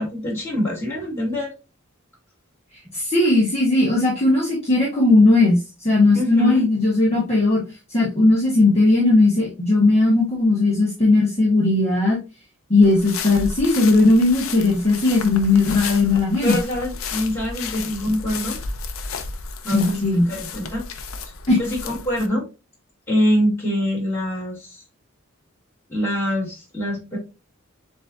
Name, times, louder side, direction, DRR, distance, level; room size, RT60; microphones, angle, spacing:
voice 1, 0.0-1.5 6.1-6.6 16.4-18.6 19.6-20.0 20.3-21.1 21.5-22.5 23.1-24.8 25.9-27.2, left 1 dB, 10° left, -5 dB, 2.3 m, -24 dB
voice 2, 2.9-7.6 7.9-12.2 12.7-16.6 19.7-20.3 21.5-21.6, left 2 dB, 30° left, -4 dB, 1.1 m, -17 dB
sound 1, 12.8-22.3, left 5 dB, 90° left, 0.6 m, -33 dB
7.1 x 2.7 x 2.4 m, 0.29 s
head